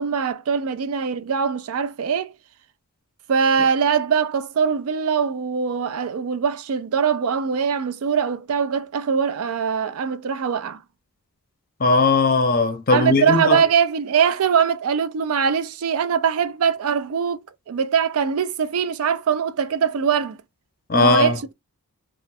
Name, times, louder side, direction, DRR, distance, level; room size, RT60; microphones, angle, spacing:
voice 1, 0.0-2.3 3.3-10.8 12.9-17.4 17.7-20.4 20.9-21.5, right 6 dB, 70° right, 0.4 m, -22 dB
voice 2, 11.8-13.6 20.9-21.4, left 3 dB, 40° left, 0.6 m, -18 dB
2.4 x 2.3 x 3.9 m
head